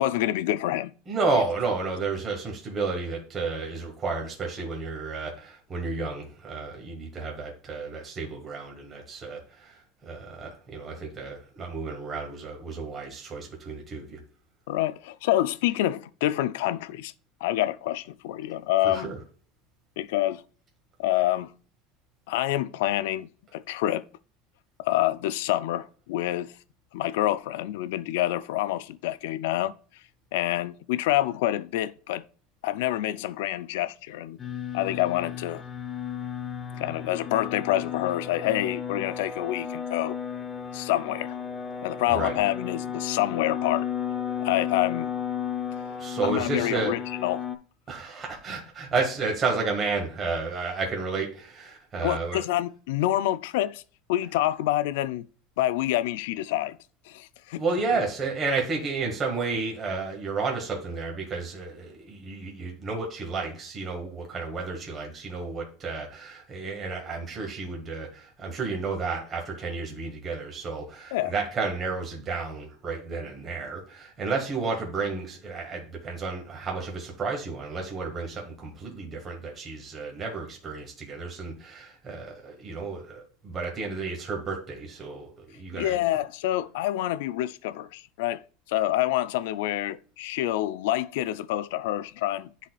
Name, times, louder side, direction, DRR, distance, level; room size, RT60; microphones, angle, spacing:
voice 1, 0.0-0.9 1.3-1.4 14.7-17.1 17.4-19.1 20.0-20.4 21.0-21.5 22.3-24.0 24.8-26.5 26.9-29.7 30.3-32.2 32.6-34.4 34.7-35.6 36.7-40.2 40.7-41.4 41.8-43.9 44.4-45.1 46.2-47.5 52.0-53.8 54.1-55.3 55.6-56.8 57.1-57.6 57.9-58.0 71.1-71.3 85.7-88.4 88.7-92.5, left 14 dB, 80° left, 0.4 m, -27 dB
voice 2, 1.1-14.2 18.8-19.2 42.1-42.4 46.0-46.9 47.9-52.4 57.6-86.0, right 4 dB, 25° right, 1.7 m, -32 dB
sound 1, 34.4-47.6, left 8 dB, 20° left, 0.7 m, -33 dB
10.0 x 4.1 x 2.3 m
supercardioid pair, 145°, 0 cm